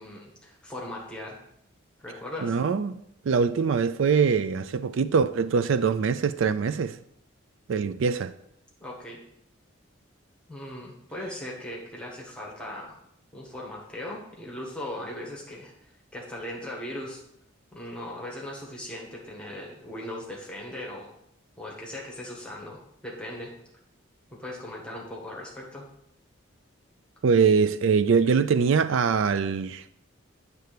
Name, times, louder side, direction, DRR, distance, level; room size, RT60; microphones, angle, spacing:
voice 1, 0.0-1.4 2.0-2.5 8.8-9.2 10.5-13.0 13.3-17.2 17.7-21.1 21.6-23.5 24.4-25.9, left 1 dB, 5° left, 1.4 m, -38 dB
voice 2, 2.4-3.0 3.2-7.0 7.7-8.3 27.2-29.8, right 5 dB, 70° right, 0.4 m, -23 dB
9.2 x 3.4 x 6.7 m
head